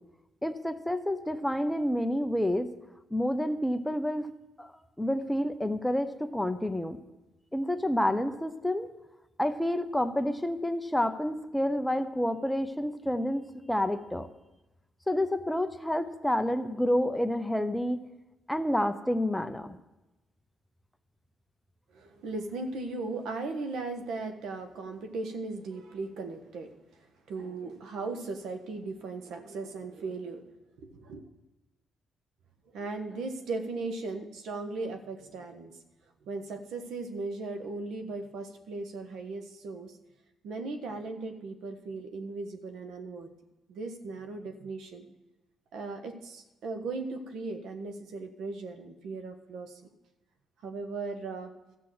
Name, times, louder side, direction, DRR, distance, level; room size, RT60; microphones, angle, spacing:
voice 1, 0.4-2.7 3.1-4.3 4.6-4.7 5.0-7.0 7.5-8.9 9.4-14.3 15.1-18.0 18.5-19.8, left 1 dB, 5° left, 9 dB, 0.8 m, -29 dB
voice 2, 21.9-30.5 30.8-31.2 32.7-35.8 36.2-40.0 40.4-43.3 43.7-45.1 45.7-49.8 50.6-51.5, right 3 dB, 80° right, 6 dB, 1.3 m, -37 dB
13.0 x 5.9 x 7.8 m, 1.0 s
cardioid pair, 90°, 0 cm